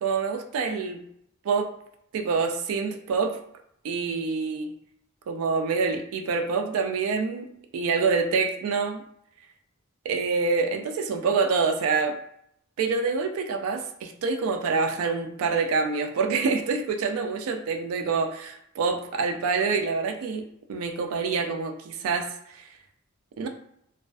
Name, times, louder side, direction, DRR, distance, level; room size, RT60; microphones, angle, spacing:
voice 1, 0.0-1.0 1.5-1.7 2.1-3.4 3.8-4.7 5.3-9.0 10.1-12.2 12.8-22.6 23.4-23.5, right 4 dB, 75° right, 5 dB, 0.3 m, -26 dB
2.3 x 2.3 x 2.3 m, 0.72 s
head